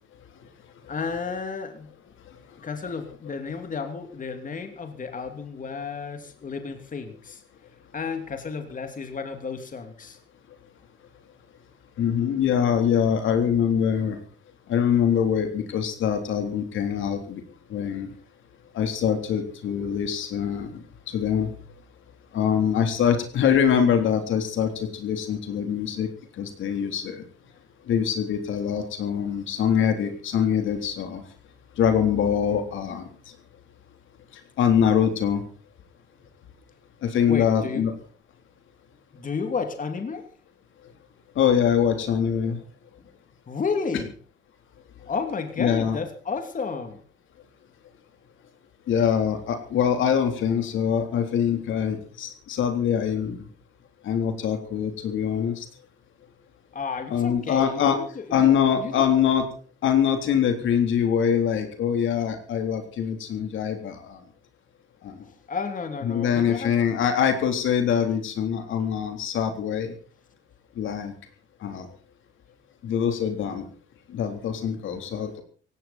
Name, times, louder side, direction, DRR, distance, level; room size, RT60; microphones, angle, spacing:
voice 1, 0.9-1.9 2.6-7.4 7.9-10.2 37.3-37.9 39.1-40.3 43.0-43.1 43.5-44.1 45.1-47.0 56.7-59.1 65.2-66.7, left 5 dB, 40° left, 6 dB, 2.9 m, -32 dB
voice 2, 12.0-14.2 14.7-17.4 17.7-18.1 18.7-21.5 22.3-26.1 26.4-27.2 27.9-31.2 31.8-33.0 34.6-35.4 37.0-37.9 41.4-42.6 45.6-46.0 48.9-53.4 54.0-55.7 57.1-58.0 58.3-59.5 59.8-64.2 65.0-65.1 66.0-69.9 70.8-71.1 71.6-71.9 72.8-73.7 74.1-75.3, left 8 dB, 75° left, 6 dB, 3.5 m, -24 dB
17.5 x 17.0 x 4.3 m, 0.40 s
cardioid pair, 90°, 20 cm